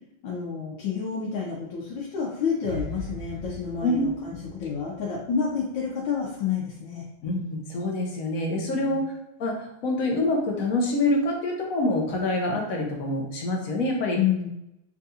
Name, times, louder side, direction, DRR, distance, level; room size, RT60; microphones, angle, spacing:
voice 1, 0.2-7.0 8.7-9.0 14.1-14.5, left 7 dB, 85° left, -4 dB, 1.4 m, -29 dB
sound 1, 2.6-5.8 6.1-6.3, right 1 dB, 45° right, 1.6 m, -40 dB
voice 2, 7.2-9.1 9.4-14.2, left 2 dB, 60° left, 0 dB, 1.0 m, -26 dB
5.6 x 2.4 x 2.7 m, 0.86 s
omnidirectional pair, 2.0 m